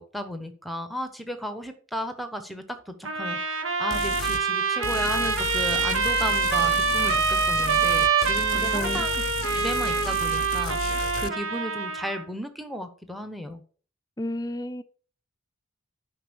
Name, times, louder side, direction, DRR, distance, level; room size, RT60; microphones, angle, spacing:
voice 1, 0.0-9.2 9.5-10.8 11.2-13.6, equal, ahead, 1.0 m, -34 dB
Trumpet, 3.0-12.2, right 5 dB, 65° right, 1.3 m, -25 dB
sound 1, 3.9-4.4 4.8-11.3, left 5 dB, 70° left, 0.6 m, -33 dB
voice 2, 8.5-9.1 14.2-14.8, left 1 dB, 15° left, 0.5 m, -31 dB
10.0 x 5.3 x 6.2 m
head